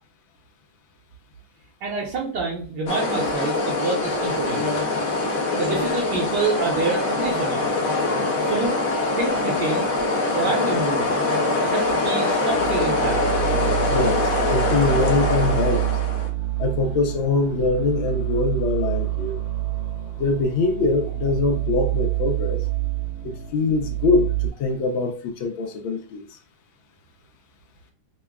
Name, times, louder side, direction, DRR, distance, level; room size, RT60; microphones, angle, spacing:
voice 1, 1.8-5.2 5.5-7.7 8.4-8.8 9.1-9.9 10.3-11.1 11.6-13.2, right 4 dB, 65° right, 1.4 m, -27 dB
sound 1, 2.9-16.3, left 2 dB, 60° left, 0.9 m, -23 dB
sound 2, 12.5-24.5, right 14 dB, 45° right, 1.1 m, -27 dB
voice 2, 13.9-15.9 16.6-19.4 20.2-22.6 23.2-26.4, left 3 dB, 85° left, 1.5 m, -23 dB
5.8 x 2.2 x 2.3 m
omnidirectional pair, 2.1 m